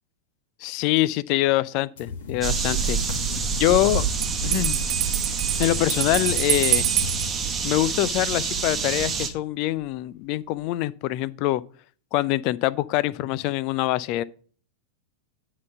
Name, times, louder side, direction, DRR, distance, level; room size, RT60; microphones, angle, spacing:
voice 1, 0.6-3.0 3.6-4.0 4.4-4.8 5.6-6.9 7.6-11.6 12.1-14.2, left 16 dB, 45° left, 0.4 m, -24 dB
sound 1, 2.0-7.3, left 5 dB, 60° left, 1.2 m, -36 dB
sound 2, 2.4-9.3, right 5 dB, 20° right, 1.1 m, -27 dB
Bell, 4.2-7.3, right 13 dB, 45° right, 0.8 m, -26 dB
9.5 x 4.0 x 5.7 m
figure-of-eight pair, 90°, 0 cm